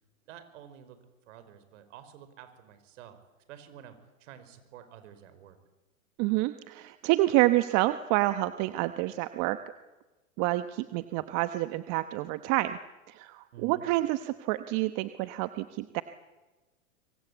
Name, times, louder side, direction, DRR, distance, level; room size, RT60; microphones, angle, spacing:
voice 1, 0.3-1.0 1.3-3.2 3.5-5.6 13.5-13.8, right 9 dB, 60° right, 10 dB, 5.3 m, -50 dB
voice 2, 6.2-9.6 10.4-12.8 13.1-16.0, right 17 dB, 40° right, 11 dB, 1.2 m, -28 dB
25.5 x 23.5 x 8.4 m, 1.1 s
hypercardioid pair, 120°, 41 cm